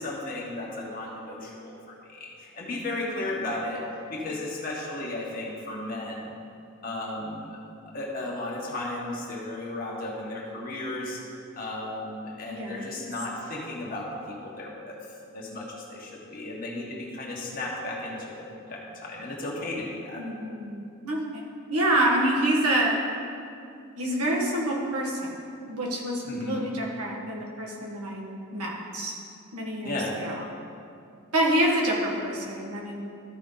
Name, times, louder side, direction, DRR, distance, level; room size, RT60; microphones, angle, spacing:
voice 1, 0.0-3.8 4.1-6.3 6.8-7.6 7.9-11.2 11.6-15.0 15.3-20.2 26.3-26.6 29.8-30.2, left 2 dB, 40° left, -3 dB, 1.2 m, -34 dB
voice 2, 12.5-12.9 20.1-21.4 21.7-23.0 24.0-25.4 25.7-29.1 29.5-30.4 31.3-33.0, right 1 dB, 85° right, -2 dB, 1.7 m, -27 dB
13.5 x 5.0 x 3.9 m, 2.5 s
head